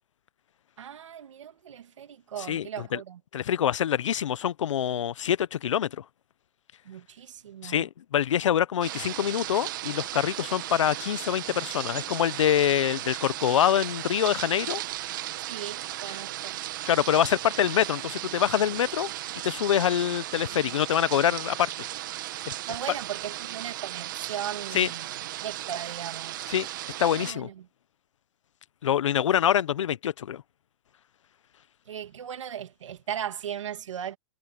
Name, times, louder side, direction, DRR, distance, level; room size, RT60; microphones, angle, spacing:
voice 1, 0.8-3.2 6.8-7.9 15.5-16.6 22.7-25.1 25.4-26.3 27.2-27.6 31.9-34.2, right 9 dB, 80° right, 2.5 m, -37 dB
voice 2, 2.5-3.0 3.3-6.0 7.6-14.8 16.9-19.1 19.4-21.7 24.7-24.9 26.5-26.7 27.0-27.5 28.8-30.4, left 10 dB, 85° left, 0.8 m, -25 dB
sound 1, 8.8-27.3, right 15 dB, 40° right, 1.4 m, -36 dB
hypercardioid pair, 170°, 15 cm